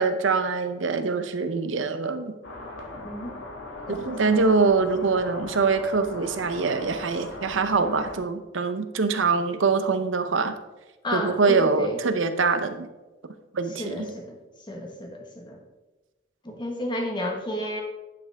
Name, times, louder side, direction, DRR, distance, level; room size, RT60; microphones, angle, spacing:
voice 1, 0.0-2.3 3.9-10.5 11.1-12.9 13.5-14.1, right 4 dB, 80° right, 9 dB, 0.7 m, -24 dB
sound 1, 2.4-8.2, left 2 dB, 85° left, 1.6 m, -39 dB
voice 2, 2.9-3.4 3.9-4.4 11.0-12.0 13.7-14.4 14.7-15.6 16.4-17.8, left 1 dB, 25° left, 1 dB, 1.3 m, -32 dB
10.0 x 5.8 x 3.5 m, 1.1 s
head